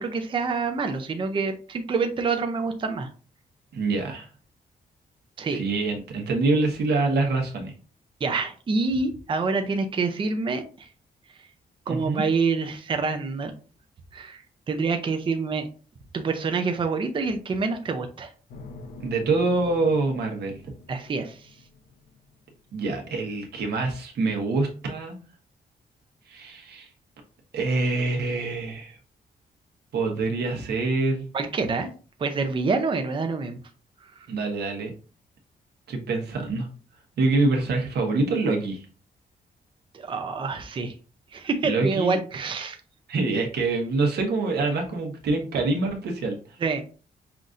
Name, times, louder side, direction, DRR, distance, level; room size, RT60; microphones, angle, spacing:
voice 1, 0.0-3.1 5.4-5.6 8.2-10.9 11.4-11.5 11.9-13.5 14.1-14.4 14.7-15.7 16.1-18.3 20.9-21.5 31.3-31.9 32.2-33.6 34.0-34.3 39.9-40.9 41.3-42.8 46.6-46.8, right 4 dB, 30° right, 6 dB, 0.5 m, -27 dB
voice 2, 3.7-4.3 5.5-7.7 11.9-12.2 19.0-20.6 22.7-25.2 26.3-26.9 27.5-29.0 29.9-31.3 34.3-34.9 35.9-36.7 37.2-38.8 41.6-42.2 43.1-46.6, right 3 dB, 90° right, 2 dB, 1.1 m, -25 dB
sound 1, 18.5-22.7, left 3 dB, 65° left, 0.6 m, -46 dB
5.8 x 2.5 x 2.5 m, 0.36 s
wide cardioid pair, 140°, 17 cm